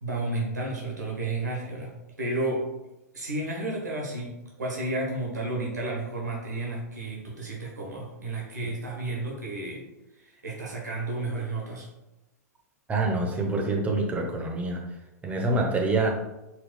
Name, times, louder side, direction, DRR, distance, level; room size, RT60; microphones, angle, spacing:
voice 1, 0.0-2.6 3.1-9.8 10.2-11.9, right 2 dB, 80° right, -2 dB, 1.0 m, -32 dB
voice 2, 12.9-14.8 15.2-16.1, right 2 dB, 15° right, 0 dB, 0.8 m, -26 dB
4.4 x 4.0 x 2.2 m, 0.97 s
figure-of-eight pair, 100°, 9 cm